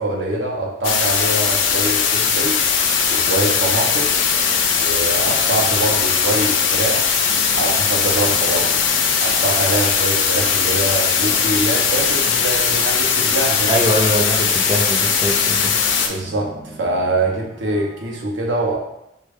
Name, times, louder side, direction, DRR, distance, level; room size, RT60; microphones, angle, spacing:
voice 1, 0.0-2.6 3.1-4.1 4.7-7.2 7.6-8.8 9.2-13.8 16.0-18.8, right 2 dB, 75° right, 0 dB, 0.7 m, -24 dB
sound 1, 0.8-16.1, left 6 dB, 85° left, 0.4 m, -19 dB
sound 2, 2.1-18.2, right 1 dB, 50° right, 0.9 m, -43 dB
voice 2, 13.7-15.7, equal, 25° right, -2 dB, 0.4 m, -22 dB
3.3 x 2.2 x 3.4 m, 0.82 s
head